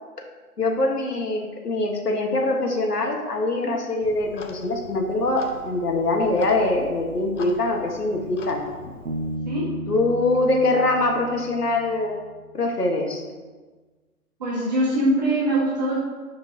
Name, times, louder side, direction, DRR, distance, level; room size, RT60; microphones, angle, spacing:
voice 1, 0.6-8.6 9.9-12.2 12.5-13.2, left 2 dB, 90° left, 1 dB, 1.7 m, -23 dB
Clock, 4.0-9.4, left 2 dB, 55° left, 1.0 m, -42 dB
Bass guitar, 9.1-12.6, right 1 dB, 45° right, 0.7 m, -34 dB
voice 2, 14.4-16.0, right 1 dB, 30° right, -6 dB, 1.4 m, -22 dB
9.8 x 5.2 x 2.9 m, 1.3 s
hypercardioid pair, 160°, 45 cm